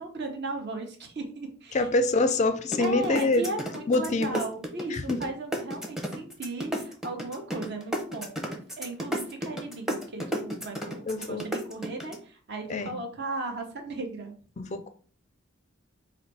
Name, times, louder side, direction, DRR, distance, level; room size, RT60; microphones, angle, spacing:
voice 1, 0.0-1.9 2.8-14.4, right 2 dB, 55° right, 1.0 m, -36 dB
voice 2, 1.7-3.5 3.9-4.4 4.9-5.2 11.1-11.4 12.7-13.0 14.6-14.9, left 2 dB, 35° left, 0.4 m, -25 dB
sound 1, 2.7-5.3 5.5-12.2, equal, ahead, 0.7 m, -31 dB
4.1 x 2.6 x 4.7 m
head